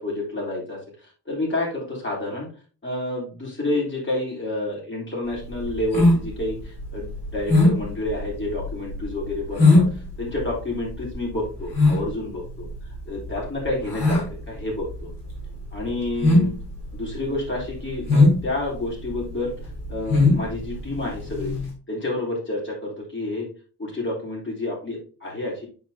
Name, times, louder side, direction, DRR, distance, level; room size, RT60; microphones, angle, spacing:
voice 1, 0.0-2.5 2.8-9.8 10.2-12.7 13.1-15.1 15.7-16.5 16.9-19.5 19.9-21.5 21.9-23.5 23.8-25.7, left 2 dB, 30° left, -4 dB, 3.7 m, -29 dB
sound 1, 5.3-21.7, left 2 dB, 75° left, 3.9 m, -21 dB
9.4 x 4.7 x 2.8 m, 0.37 s
wide cardioid pair, 125°, 40 cm